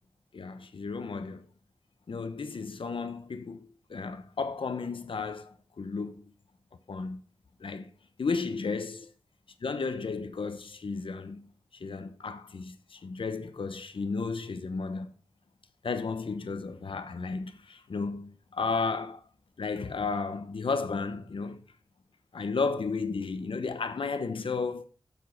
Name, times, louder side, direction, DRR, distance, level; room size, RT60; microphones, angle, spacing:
voice 1, 0.3-1.4 2.1-6.2 6.9-7.2 7.6-7.9 8.2-9.1 9.6-11.4 11.8-15.1 15.8-19.2 19.6-21.6 22.3-24.8, left 4 dB, 80° left, 1.0 m, -33 dB
7.3 x 6.4 x 5.8 m
wide cardioid pair, 95°, 9 cm